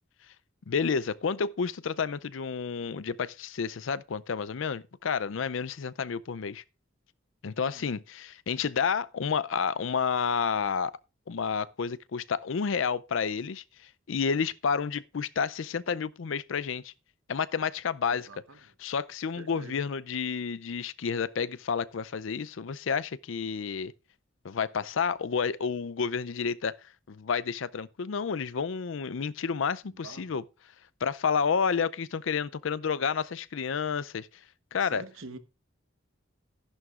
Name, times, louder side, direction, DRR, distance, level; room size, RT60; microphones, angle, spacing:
voice 1, 0.7-6.6 7.4-10.9 11.3-13.6 14.1-16.9 17.3-18.3 18.8-23.9 24.4-26.7 27.1-30.4 31.0-34.3 34.7-35.0, left 6 dB, 70° left, 0.5 m, -30 dB
voice 2, 7.6-8.0 18.1-18.7 19.3-19.8 29.9-30.4 34.8-35.4, right 3 dB, 85° right, 1.1 m, -46 dB
14.0 x 11.0 x 2.4 m
head